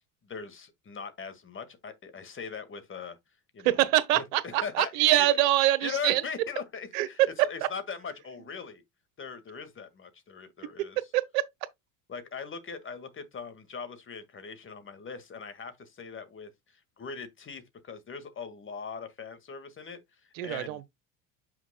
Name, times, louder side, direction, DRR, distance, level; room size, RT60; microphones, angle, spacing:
voice 1, 0.2-3.2 3.5-3.9 4.1-5.4 5.8-8.8 9.2-11.0 12.1-20.8, left 5 dB, 30° left, 1.9 m, -40 dB
voice 2, 3.6-6.2 6.9-7.5 10.8-11.4 20.4-20.9, right 15 dB, 80° right, 1.1 m, -25 dB
7.2 x 6.4 x 2.3 m
supercardioid pair, 85°, 40 cm